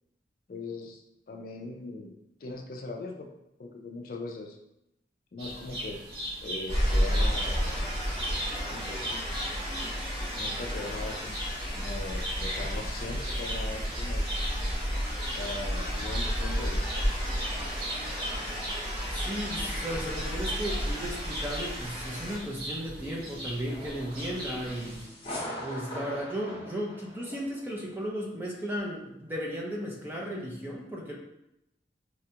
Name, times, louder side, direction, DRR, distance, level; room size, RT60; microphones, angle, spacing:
voice 1, 0.5-2.2 2.4-3.3 3.6-4.6 5.3-6.0 6.4-7.9 8.7-9.2 10.3-11.4 11.8-14.2 15.3-17.1, left 3 dB, 50° left, 2 dB, 0.4 m, -40 dB
sound 1, 5.4-25.1, equal, 55° right, 0.9 m, -39 dB
sound 2, 6.7-22.4, equal, 30° right, 1.4 m, -32 dB
voice 2, 19.1-25.0 25.6-31.1, equal, 10° right, -3 dB, 0.5 m, -35 dB
sound 3, 23.6-27.7, left 1 dB, 30° left, 0.8 m, -41 dB
4.1 x 2.3 x 2.8 m, 0.86 s
head